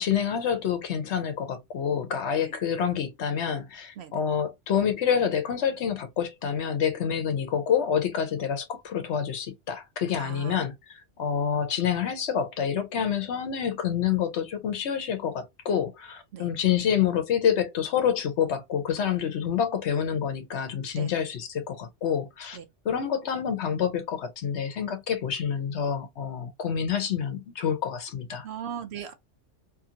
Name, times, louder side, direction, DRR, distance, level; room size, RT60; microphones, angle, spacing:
voice 1, 0.0-22.6 22.8-28.4, left 8 dB, 70° left, 0.9 m, -27 dB
voice 2, 10.2-10.6 16.3-16.5 21.0-21.1 22.5-22.6 28.4-29.1, right 8 dB, 65° right, 0.8 m, -38 dB
2.7 x 2.5 x 2.7 m
omnidirectional pair, 1.3 m